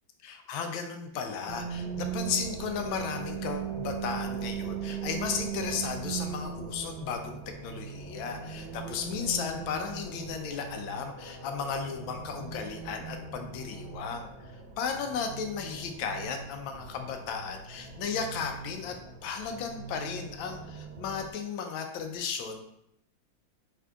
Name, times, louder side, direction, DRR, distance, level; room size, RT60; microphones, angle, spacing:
voice 1, 0.2-14.3 14.8-19.0 19.2-22.6, left 6 dB, 85° left, 5 dB, 1.4 m, -35 dB
sound 1, 1.5-21.3, right 7 dB, 85° right, 1.4 m, -39 dB
sound 2, 7.2-15.8, right 1 dB, 55° right, 0.4 m, -55 dB
3.8 x 3.5 x 3.4 m, 0.79 s
omnidirectional pair, 2.1 m